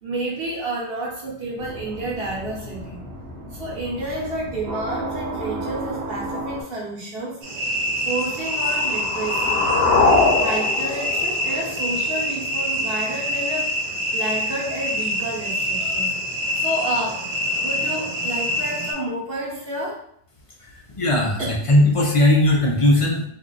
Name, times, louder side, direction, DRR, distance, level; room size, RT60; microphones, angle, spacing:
voice 1, 0.0-3.0 3.5-7.4 8.0-9.6 10.4-17.2 17.6-20.0, right 2 dB, 70° right, -3 dB, 1.1 m, -30 dB
sound 1, 1.6-6.6, right 1 dB, 85° right, 0.9 m, -33 dB
sound 2, 7.4-18.9, left 1 dB, 50° right, 0.8 m, -25 dB
sound 3, 8.3-12.3, left 3 dB, 80° left, 0.9 m, -22 dB
voice 2, 20.6-23.2, left 1 dB, 40° left, -1 dB, 0.5 m, -18 dB
2.5 x 2.3 x 3.8 m, 0.69 s
omnidirectional pair, 1.0 m